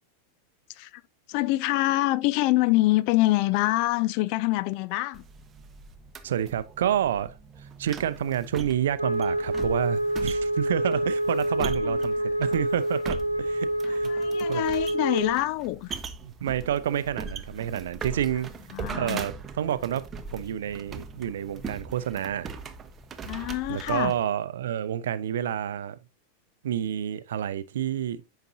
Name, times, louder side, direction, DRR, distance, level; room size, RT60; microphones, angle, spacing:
voice 1, 0.7-1.0 1.3-5.2 11.8-12.3 13.9-15.9 18.7-19.2 23.3-24.1, left 18 dB, 45° left, 0.4 m, -26 dB
sound 1, 5.1-24.2, right 5 dB, 20° right, 0.8 m, -40 dB
voice 2, 6.2-14.1 14.5-14.6 16.2-18.5 19.0-20.1 20.3-22.5 23.7-26.0 26.6-28.2, right 10 dB, 60° right, 0.6 m, -29 dB
Wind instrument woodwind instrument, 9.0-15.4, right 1 dB, 90° right, 1.1 m, -27 dB
9.0 x 5.7 x 2.7 m
figure-of-eight pair, 90°, 0 cm